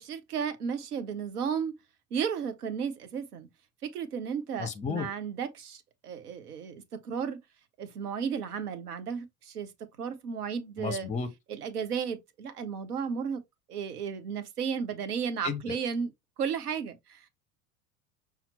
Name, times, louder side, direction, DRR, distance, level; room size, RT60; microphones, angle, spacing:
voice 1, 0.0-1.7 2.1-3.5 3.8-7.4 7.8-9.7 10.0-11.1 11.5-13.4 13.7-16.1 16.4-17.3, right 7 dB, 65° right, 1.0 m, -34 dB
voice 2, 4.6-5.1 10.8-11.3 15.4-15.8, left 5 dB, 15° left, 0.7 m, -33 dB
5.7 x 2.1 x 4.0 m
figure-of-eight pair, 75°, 49 cm